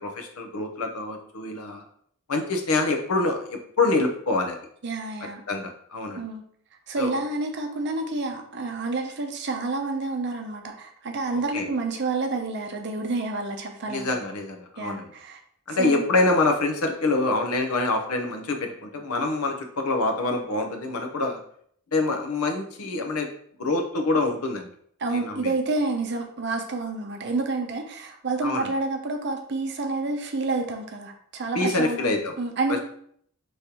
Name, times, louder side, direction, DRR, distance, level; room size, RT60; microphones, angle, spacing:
voice 1, 0.0-1.8 2.3-4.6 5.5-6.2 7.0-7.2 11.5-11.7 13.9-15.1 15.7-21.4 21.9-23.3 23.6-24.7 25.1-25.5 28.4-28.7 31.5-32.3, left 2 dB, 85° left, 4 dB, 0.8 m, -26 dB
voice 2, 4.8-5.4 6.2-6.4 6.9-14.3 14.8-15.4 15.7-16.0 25.0-32.8, right 3 dB, 50° right, 4 dB, 0.6 m, -29 dB
5.1 x 3.1 x 2.9 m, 0.64 s
head